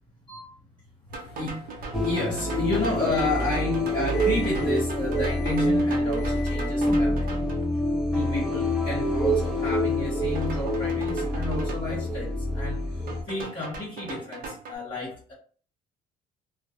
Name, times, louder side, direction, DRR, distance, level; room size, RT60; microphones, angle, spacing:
sound 1, 1.1-7.6 10.3-11.7 13.1-14.8, right 3 dB, 60° right, 0.6 m, -39 dB
Microwave oven, 1.2-3.8 4.1-4.7 5.1-5.7 6.2-6.8, left 9 dB, 70° left, 0.5 m, -44 dB
sound 2, 1.9-13.2, left 1 dB, ahead, 0.7 m, -26 dB
voice 1, 2.0-7.5 8.1-15.3, left 1 dB, 30° left, 1.0 m, -31 dB
2.2 x 2.1 x 2.7 m
cardioid pair, 110°, 17 cm